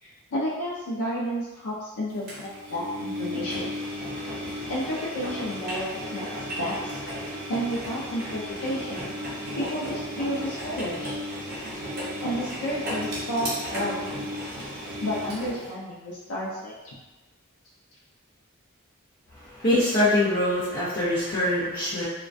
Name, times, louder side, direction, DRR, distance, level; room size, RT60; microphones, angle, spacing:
voice 1, 0.0-3.7 4.7-7.0 7.5-9.1 9.5-11.1 11.7-11.9 12.2-14.1 15.0-17.0, equal, 85° left, -5 dB, 0.4 m, -31 dB
Engine, 2.3-15.7, equal, 45° right, 0.7 m, -34 dB
voice 2, 19.4-22.0, left 1 dB, 40° left, -12 dB, 0.6 m, -24 dB
2.3 x 2.2 x 2.5 m, 1.1 s
head